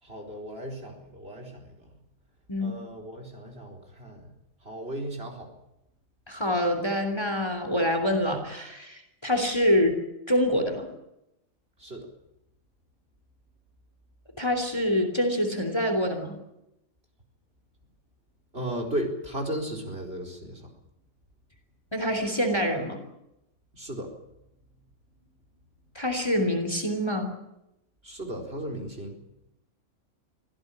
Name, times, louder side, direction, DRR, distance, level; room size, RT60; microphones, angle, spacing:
voice 1, 0.0-2.0 2.6-4.3 4.6-5.5 11.8-12.1 18.5-20.7 23.7-24.1 28.0-29.2, right 1 dB, 45° right, 4 dB, 4.6 m, -35 dB
voice 2, 6.3-10.0 10.3-10.9 14.4-16.4 21.9-23.0 25.9-27.3, left 1 dB, 20° left, 6 dB, 3.3 m, -26 dB
24.5 x 16.0 x 8.8 m, 0.86 s
omnidirectional pair, 1.5 m